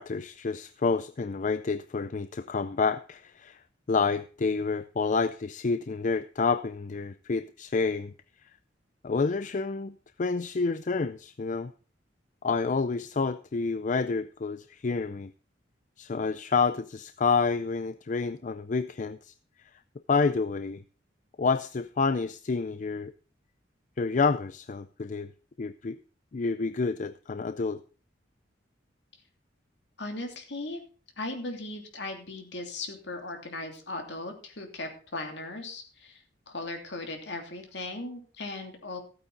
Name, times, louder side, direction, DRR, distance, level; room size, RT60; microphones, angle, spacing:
voice 1, 0.0-3.6 3.9-8.1 9.0-9.9 10.2-11.7 12.4-15.3 16.0-19.3 20.1-20.8 21.4-23.1 24.0-25.3 25.6-26.0 26.3-27.8, left 4 dB, 40° left, 13 dB, 0.4 m, -28 dB
voice 2, 30.0-30.8 31.2-39.0, left 2 dB, 65° left, 3 dB, 3.0 m, -38 dB
15.0 x 8.9 x 4.1 m, 0.38 s
head